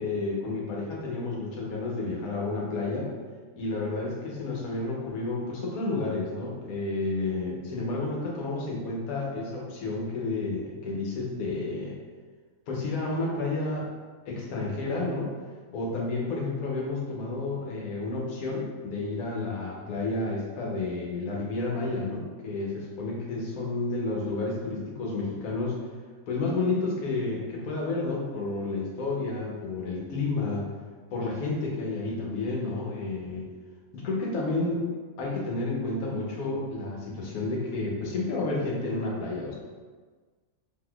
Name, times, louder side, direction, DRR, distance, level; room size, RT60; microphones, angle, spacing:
voice 1, 0.0-3.1 3.6-12.0 12.7-13.9 14.2-15.3 15.7-25.8 26.3-30.7 31.1-33.5 33.9-34.8 35.2-39.5, left 3 dB, 85° left, -2 dB, 1.2 m, -31 dB
3.6 x 2.6 x 2.3 m, 1.4 s
omnidirectional pair, 1.5 m